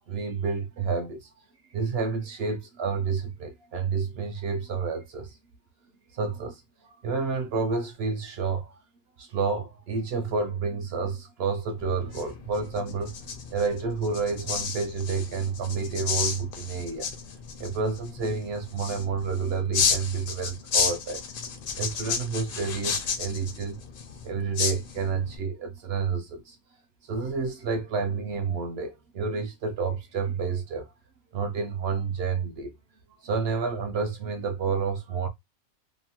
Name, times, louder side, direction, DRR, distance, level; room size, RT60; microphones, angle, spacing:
voice 1, 0.1-1.3 1.7-5.4 6.1-8.7 9.2-13.1 13.5-17.1 17.6-21.2 21.8-23.8 24.2-26.6 27.0-30.9 31.3-32.8 33.2-35.3, right 5 dB, 70° right, 0.6 m, -29 dB
sound 1, 11.8-25.4, left 6 dB, 60° left, 0.5 m, -32 dB
2.9 x 2.0 x 2.8 m
omnidirectional pair, 1.5 m